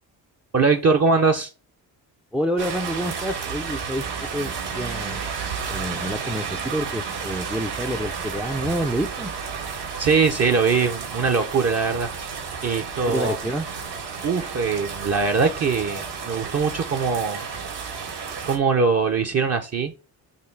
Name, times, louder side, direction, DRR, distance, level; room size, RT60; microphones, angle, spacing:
voice 1, 0.5-1.5 10.0-12.1 12.6-13.4 14.2-17.4 18.4-19.9, right 4 dB, 35° right, 3 dB, 0.7 m, -21 dB
voice 2, 2.3-4.0 4.3-5.2 5.7-9.3 13.1-13.6, equal, 5° right, 5 dB, 0.4 m, -28 dB
sound 1, 2.6-18.6, right 6 dB, 75° right, 2.3 m, -32 dB
6.7 x 3.2 x 4.6 m, 0.32 s
cardioid pair, 125°, 42 cm